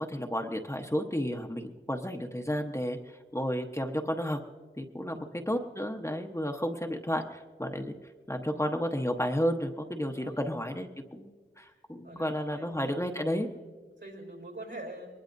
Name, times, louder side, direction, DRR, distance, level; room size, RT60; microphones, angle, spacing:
voice 1, 0.0-4.4 4.8-7.9 8.3-11.3 11.6-13.5, equal, 15° left, 3 dB, 1.0 m, -32 dB
voice 2, 5.0-5.5 10.2-10.5 11.7-13.2 13.6-15.1, right 2 dB, 65° right, 2 dB, 4.0 m, -46 dB
22.5 x 20.0 x 2.7 m, 1.4 s
wide cardioid pair, 55°, 21 cm